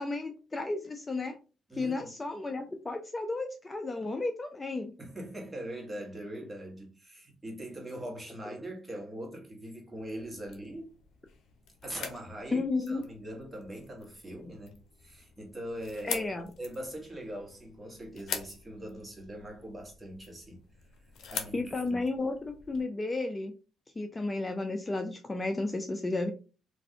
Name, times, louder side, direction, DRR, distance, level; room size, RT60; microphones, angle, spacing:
voice 1, 0.0-1.4 1.7-4.9 8.5-8.6 12.5-13.0 16.0-16.5 21.5-23.5 24.0-26.3, left 3 dB, 20° left, 0.4 m, -33 dB
voice 2, 1.7-2.1 5.0-10.9 11.8-16.2 16.6-20.6 21.3-22.0, right 1 dB, 15° right, 1.3 m, -42 dB
sound 1, 9.9-22.8, left 6 dB, 75° left, 0.6 m, -45 dB
3.1 x 2.5 x 2.7 m
cardioid pair, 90°, 0 cm